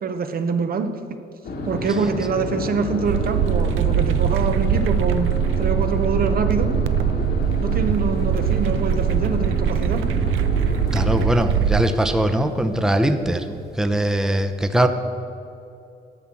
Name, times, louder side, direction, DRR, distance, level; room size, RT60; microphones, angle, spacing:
voice 1, 0.0-1.0 1.7-6.7 7.6-10.1, right 4 dB, 50° right, 8 dB, 0.8 m, -25 dB
sound 1, 1.5-11.3, left 1 dB, 55° left, 1.4 m, -29 dB
sound 2, 3.0-11.9, right 9 dB, 90° right, 0.5 m, -22 dB
voice 2, 10.9-14.9, right 1 dB, 5° right, 7 dB, 0.7 m, -21 dB
11.0 x 5.7 x 7.5 m, 2.6 s
cardioid pair, 90°, 20 cm